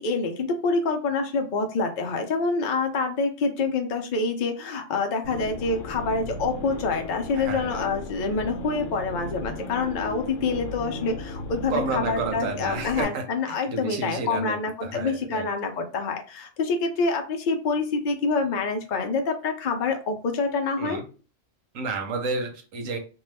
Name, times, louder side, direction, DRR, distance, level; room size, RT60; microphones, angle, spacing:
voice 1, 0.0-21.0, left 4 dB, 55° left, 4 dB, 0.5 m, -26 dB
sound 1, 5.2-13.0, left 2 dB, 80° left, 1.0 m, -36 dB
voice 2, 7.4-7.9 11.7-14.6 14.8-15.5 20.8-21.0 21.7-23.0, right 3 dB, 90° right, 4 dB, 1.1 m, -31 dB
2.6 x 2.2 x 3.2 m, 0.35 s
omnidirectional pair, 1.3 m